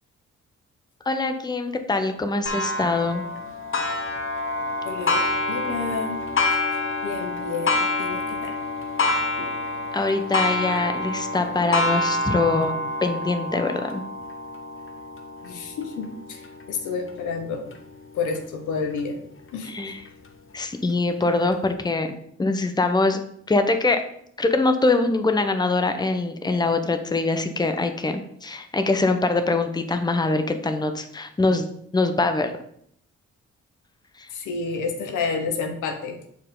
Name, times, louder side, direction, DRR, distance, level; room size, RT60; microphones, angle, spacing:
voice 1, 1.1-3.2 9.9-14.0 19.6-20.0 20.5-22.1 22.4-23.2 23.5-24.0 24.4-31.7 31.9-32.5, left 3 dB, 15° left, 7 dB, 0.8 m, -23 dB
Clock, 2.5-17.8 18.4-18.5 19.0-19.1 20.1-20.2, left 2 dB, 40° left, 1.0 m, -27 dB
voice 2, 4.8-5.2 5.5-6.2 6.5-6.7 7.0-8.6 15.4-16.4 16.7-17.7 18.1-19.2 19.5-19.7 34.3-36.2, left 5 dB, 80° left, 4 dB, 1.1 m, -29 dB
6.3 x 4.6 x 3.8 m, 0.69 s
supercardioid pair, 55°, 30 cm